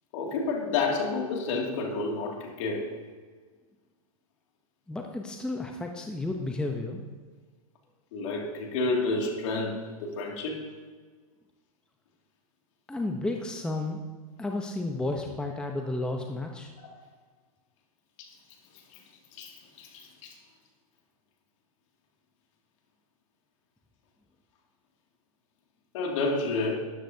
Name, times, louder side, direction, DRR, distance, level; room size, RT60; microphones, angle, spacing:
voice 1, 0.1-2.9 8.1-10.7 16.8-17.0 18.2-18.3 18.9-19.0 19.3-20.3 25.9-26.8, left 3 dB, 55° left, 1 dB, 2.3 m, -30 dB
voice 2, 4.9-7.0 12.9-14.0 14.4-16.7, left 2 dB, 5° left, 2 dB, 0.7 m, -32 dB
13.0 x 10.0 x 2.7 m, 1.5 s
hypercardioid pair, 130°, 19 cm